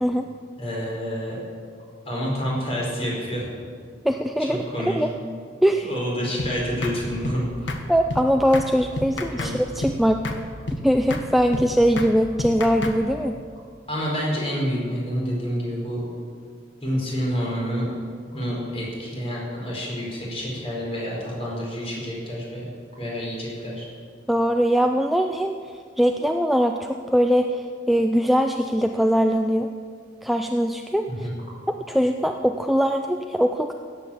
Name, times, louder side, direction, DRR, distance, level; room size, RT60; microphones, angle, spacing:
voice 1, 0.6-1.4 2.0-3.5 4.5-5.0 5.8-7.8 9.1-9.6 13.9-16.0 16.8-18.0 18.3-22.6 23.0-23.9 31.1-31.3, equal, 30° left, -4 dB, 4.9 m, -28 dB
voice 2, 4.0-4.6 5.0-5.1 5.6-5.9 7.9-10.2 10.8-13.4 24.3-25.5 26.0-29.7 30.2-31.3 31.7-33.7, equal, ahead, 4 dB, 0.4 m, -21 dB
sound 1, 6.4-6.5 6.8-7.0 7.2-7.4 7.7-7.8 8.1-8.2 8.5-8.7 9.0-9.5 9.8-10.0 10.2-10.4 10.7-10.8 11.1-11.3 11.5-11.7 12.0-12.1 12.4-13.0, left 2 dB, 80° left, 1.4 m, -29 dB
17.0 x 8.3 x 7.3 m, 2.1 s
head